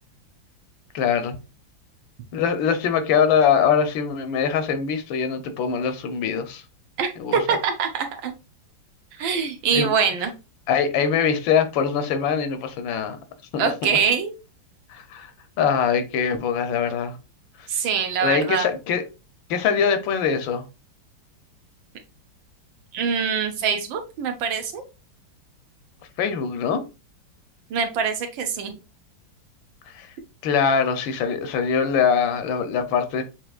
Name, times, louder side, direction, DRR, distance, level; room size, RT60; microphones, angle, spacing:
voice 1, 0.9-1.4 2.3-6.6 7.2-7.6 9.7-9.9 10.7-13.2 13.5-13.7 14.9-15.3 15.6-17.2 17.6-17.7 18.2-19.0 19.5-20.7 26.2-26.8 29.9-30.1 30.4-33.2, left 7 dB, 80° left, 1.5 m, -23 dB
voice 2, 7.0-8.3 9.2-10.3 13.6-14.4 17.7-18.7 19.7-19.8 22.9-24.8 27.7-28.8, right 6 dB, 80° right, 1.6 m, -24 dB
7.2 x 2.9 x 2.4 m
omnidirectional pair, 2.1 m